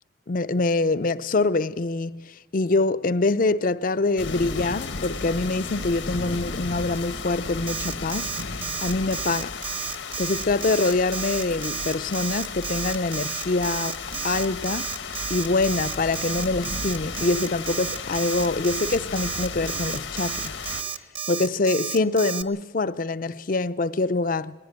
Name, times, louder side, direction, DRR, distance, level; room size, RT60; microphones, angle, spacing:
voice 1, 0.3-8.3 8.8-9.6 10.2-14.0 14.2-14.9 15.3-20.5 21.3-24.5, left 3 dB, 50° left, 0.5 m, -25 dB
sound 1, 4.2-20.8, left 4 dB, 90° left, 1.5 m, -34 dB
Alarm, 7.7-22.4, right 8 dB, 30° right, 0.7 m, -32 dB
20.0 x 15.5 x 9.0 m
head